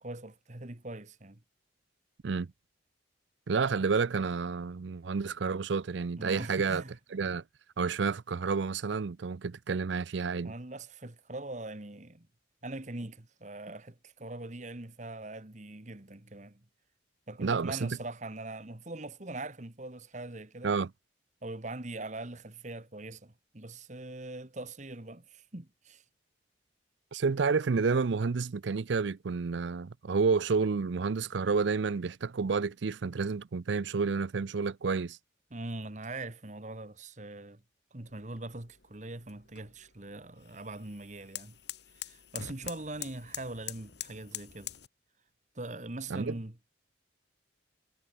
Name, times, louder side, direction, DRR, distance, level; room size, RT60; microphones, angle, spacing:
voice 1, 0.0-1.4 6.2-6.9 10.4-12.3 12.6-16.7 17.3-20.7 21.4-26.0 35.5-37.6 37.9-41.6 41.9-44.7 45.5-46.6, right 2 dB, 40° right, 1.5 m, -42 dB
voice 2, 3.5-6.8 7.1-7.4 7.8-10.5 17.4-18.0 20.6-20.9 27.1-35.2 46.1-46.4, right 5 dB, 70° right, 0.5 m, -30 dB
sound 1, 38.1-44.9, left 11 dB, 60° left, 2.7 m, -45 dB
head